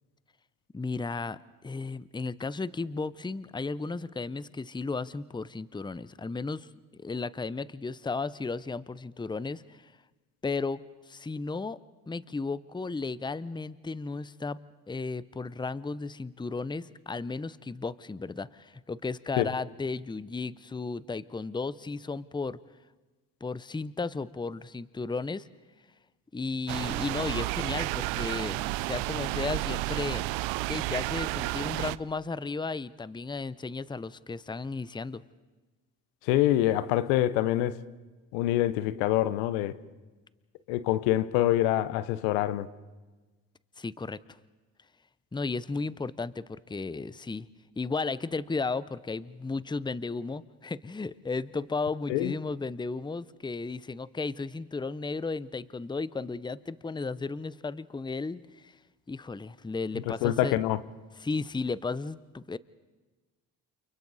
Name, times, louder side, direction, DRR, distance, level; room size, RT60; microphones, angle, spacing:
voice 1, 0.7-6.7 7.0-9.9 10.4-10.8 11.1-11.8 12.1-14.6 14.9-22.6 23.4-25.5 26.3-30.3 30.7-35.2 43.8-44.2 45.3-47.5 47.8-58.7 59.1-60.6 61.2-62.6, left 4 dB, 10° left, 0.7 m, -34 dB
sound 1, 26.7-32.0, right 20 dB, 75° right, 0.6 m, -31 dB
voice 2, 36.3-37.8 38.3-39.7 40.7-42.7 52.1-52.3 60.1-60.8, left 14 dB, 85° left, 0.9 m, -25 dB
29.0 x 28.5 x 4.1 m
supercardioid pair, 60°, 46 cm